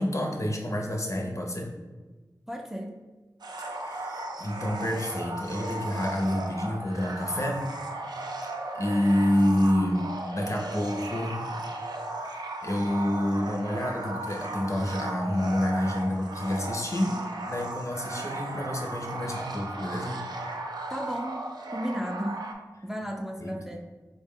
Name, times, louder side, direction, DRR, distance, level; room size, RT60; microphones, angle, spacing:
voice 1, 0.0-1.7 3.8-7.7 8.1-8.3 8.7-11.5 12.2-17.2 17.5-20.2 23.4-23.6, left 1 dB, 45° left, 1 dB, 0.6 m, -28 dB
voice 2, 2.5-3.0 20.9-21.4 21.7-22.5 22.8-23.8, equal, 5° right, 2 dB, 0.3 m, -34 dB
sound 1, 3.4-22.5, right 2 dB, 85° right, 0.4 m, -36 dB
4.0 x 2.1 x 3.6 m, 1.2 s
wide cardioid pair, 65°, 7 cm